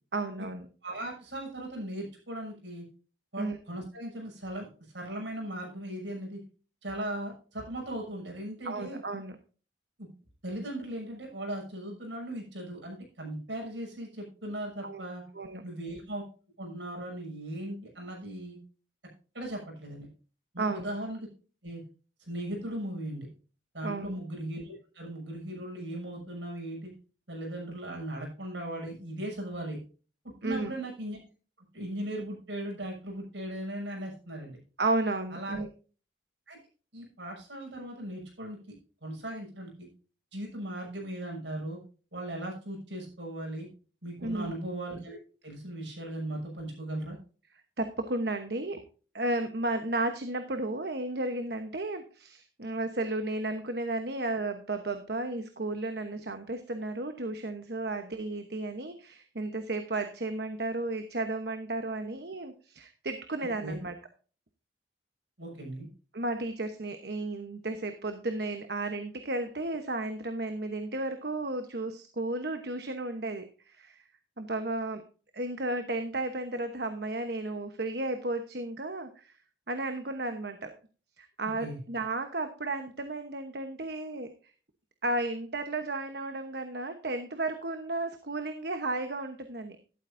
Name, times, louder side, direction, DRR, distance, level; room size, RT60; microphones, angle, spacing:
voice 1, 0.1-0.7 3.4-3.6 8.6-9.3 14.8-15.1 15.3-15.6 20.6-20.9 23.8-24.2 30.4-30.7 34.8-35.7 44.2-44.6 47.8-48.8 49.1-63.9 66.1-74.0 74.4-75.0 75.3-79.4 79.7-80.7 81.2-84.3 85.0-89.8, right 2 dB, 60° right, 7 dB, 1.0 m, -33 dB
voice 2, 0.8-2.8 3.3-4.7 4.9-6.4 6.8-9.0 10.0-10.1 10.4-15.2 15.6-16.2 16.6-18.6 19.3-20.1 20.5-21.3 21.6-21.8 22.3-23.3 23.7-26.9 27.3-29.8 30.2-31.2 31.7-34.6 35.3-35.6 36.5-36.6 36.9-38.6 39.0-39.9 40.3-41.8 42.1-43.7 44.0-45.2 45.4-47.2 63.4-63.8 65.4-65.9 81.6-81.8, right 1 dB, 75° right, 0 dB, 6.6 m, -38 dB
12.0 x 12.0 x 2.6 m, 0.37 s
head